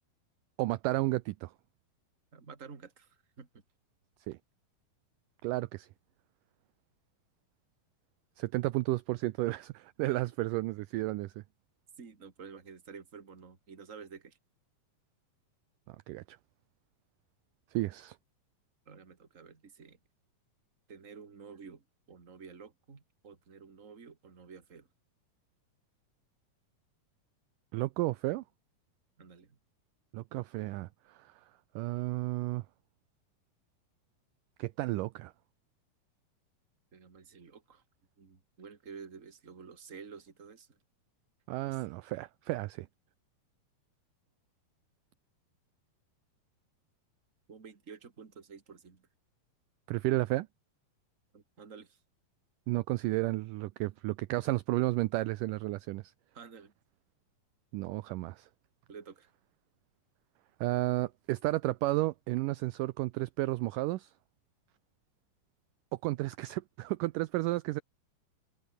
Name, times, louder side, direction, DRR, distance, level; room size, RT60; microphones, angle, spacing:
voice 1, 0.6-1.5 4.3-4.4 5.4-5.9 8.4-11.3 16.1-16.4 17.7-18.2 27.7-28.4 30.1-31.2 31.8-32.6 34.6-35.3 41.5-42.9 49.9-50.5 52.7-56.0 57.7-58.5 60.6-64.1 66.0-67.8, right 19 dB, 80° right, 2.0 m, -32 dB
voice 2, 2.3-3.6 10.0-10.2 12.0-14.4 18.9-20.0 20.9-24.9 29.2-29.6 36.9-37.8 38.2-40.8 41.7-41.8 47.5-49.1 51.3-52.0 56.3-56.7 58.9-59.3, right 5 dB, 25° right, 2.3 m, -50 dB
omnidirectional pair, 4.3 m